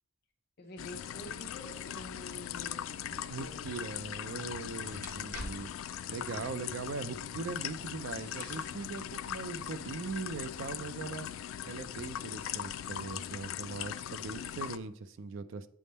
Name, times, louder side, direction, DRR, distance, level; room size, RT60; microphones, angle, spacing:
voice 1, 0.6-3.7 6.7-6.9, left 1 dB, 50° left, 0.8 m, -48 dB
sound 1, 0.8-14.8, left 10 dB, 85° left, 0.3 m, -40 dB
sound 2, 3.3-10.4, equal, 45° right, 1.5 m, -52 dB
voice 2, 3.3-11.3 11.7-15.7, right 4 dB, 75° right, 0.4 m, -40 dB
8.4 x 3.6 x 4.1 m
head